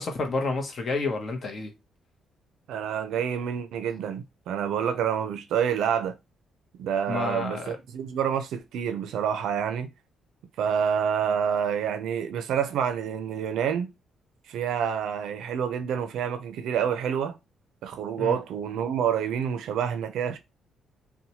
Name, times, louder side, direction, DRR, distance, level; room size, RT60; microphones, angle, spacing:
voice 1, 0.0-1.7 7.1-7.7 18.2-18.4, left 3 dB, 40° left, 0.7 m, -29 dB
voice 2, 2.7-6.1 6.8-9.9 10.6-13.9 14.5-17.4 17.8-20.4, right 8 dB, 85° right, 0.4 m, -28 dB
2.7 x 2.1 x 2.8 m
cardioid pair, 125°, 0 cm